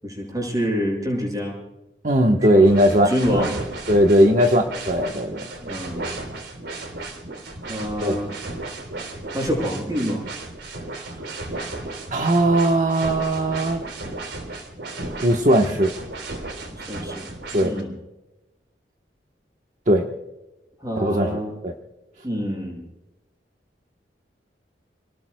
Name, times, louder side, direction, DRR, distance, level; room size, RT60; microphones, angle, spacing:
voice 1, 0.0-1.6 2.3-3.5 5.6-6.1 7.6-8.3 9.3-10.2 16.7-17.3 17.5-18.0 20.8-21.5 22.2-22.8, equal, 20° right, 1 dB, 6.3 m, -27 dB
voice 2, 2.0-3.5 3.9-5.5 8.0-8.2 11.0-11.1 12.1-13.8 15.2-15.9 17.5-17.7 19.9-20.1 21.0-21.4 21.6-21.7, right 1 dB, 45° right, 2 dB, 1.2 m, -18 dB
sound 1, 2.6-17.8, right 2 dB, 90° right, 3.5 m, -34 dB
29.5 x 19.0 x 2.3 m, 1.0 s
head